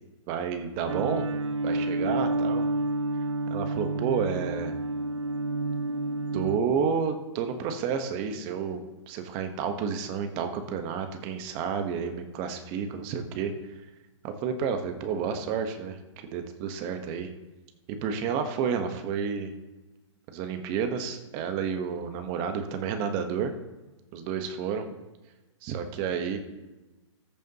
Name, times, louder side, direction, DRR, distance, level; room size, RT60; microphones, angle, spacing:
voice 1, 0.3-1.3 1.6-2.6 3.5-4.8 6.3-13.7 14.2-17.3 18.0-19.5 20.3-23.5 24.1-24.9 25.6-26.4, right 6 dB, 30° right, 6 dB, 1.3 m, -30 dB
sound 1, 0.9-6.6, right 2 dB, 70° right, 0.7 m, -29 dB
19.5 x 7.1 x 3.0 m, 1.1 s
hypercardioid pair, 135°, 16 cm